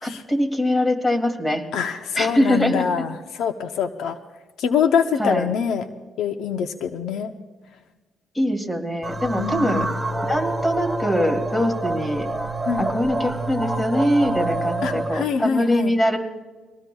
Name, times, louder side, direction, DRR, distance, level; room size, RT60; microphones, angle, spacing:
voice 1, 0.0-1.6 2.2-2.8 5.2-5.5 8.3-9.9 10.2-12.3 12.8-16.2, equal, 15° left, 5 dB, 2.6 m, -22 dB
voice 2, 1.7-4.2 4.6-5.9 6.2-7.3 9.4-10.0 12.7-12.9 14.8-15.9, left 7 dB, 80° left, 8 dB, 0.7 m, -24 dB
sound 1, 9.0-15.2, right 2 dB, 5° right, 1.2 m, -27 dB
23.0 x 18.5 x 2.3 m, 1.3 s
cardioid pair, 95°, 0 cm